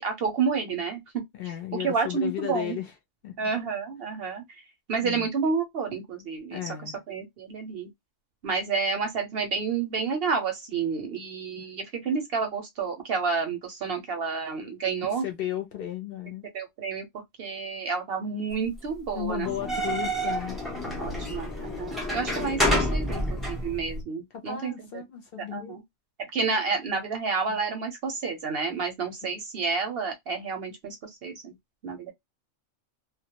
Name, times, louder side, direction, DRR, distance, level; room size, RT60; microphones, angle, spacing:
voice 1, 0.0-1.5 1.8-2.8 3.4-4.4 4.9-7.9 8.4-15.3 16.5-17.0 17.4-19.7 21.0-25.0 25.5-25.8 26.2-31.5 31.8-32.1, right 5 dB, 60° right, 0.7 m, -30 dB
voice 2, 1.3-2.9 3.2-3.4 5.0-5.3 6.5-7.0 11.6-11.7 15.2-16.4 19.1-20.6 22.4-22.6 24.3-25.8 27.5-27.6, left 11 dB, 60° left, 0.6 m, -34 dB
sound 1, 19.4-24.0, equal, ahead, 0.4 m, -28 dB
2.2 x 2.0 x 2.8 m
omnidirectional pair, 1.3 m